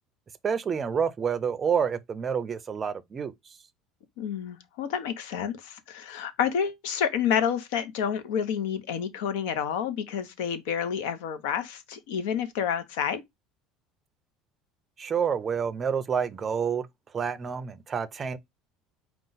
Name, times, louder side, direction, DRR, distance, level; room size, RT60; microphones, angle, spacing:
voice 1, 0.4-3.6 15.0-16.9 17.1-18.4, right 7 dB, 25° right, 0.4 m, -28 dB
voice 2, 4.2-13.2, left 8 dB, 90° left, 0.8 m, -29 dB
5.1 x 2.3 x 3.8 m
cardioid pair, 150°, 0 cm